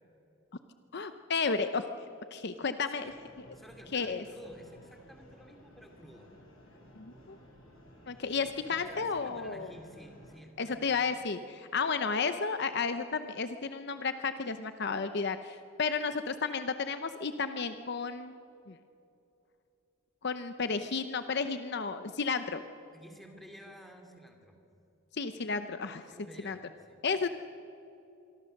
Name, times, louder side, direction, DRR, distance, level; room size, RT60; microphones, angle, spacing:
voice 1, 0.9-1.9 2.3-3.1 3.9-4.2 7.0-7.4 8.1-9.7 10.6-18.4 18.7-18.8 20.2-22.6 25.1-26.0 26.4-26.6 27.0-27.3, left 5 dB, 55° left, 9 dB, 0.8 m, -32 dB
voice 2, 2.9-3.2 3.5-6.3 8.3-11.0 22.9-24.6 26.1-27.0, equal, ahead, 3 dB, 2.7 m, -52 dB
sound 1, 3.0-10.4, equal, 70° left, 5.9 m, -56 dB
25.5 x 24.0 x 6.6 m, 2.7 s
head